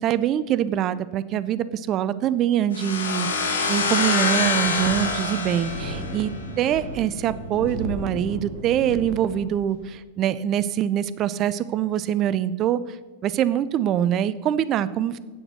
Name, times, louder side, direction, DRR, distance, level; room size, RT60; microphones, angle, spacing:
voice 1, 0.0-12.8 13.2-15.2, right 10 dB, 35° right, 16 dB, 0.5 m, -24 dB
sound 1, 2.7-6.5, left 4 dB, 65° left, 1.3 m, -25 dB
Wind, 4.3-9.9, equal, 90° left, 3.4 m, -35 dB
8.7 x 7.9 x 6.0 m, 1.3 s
figure-of-eight pair, 90°, 0 cm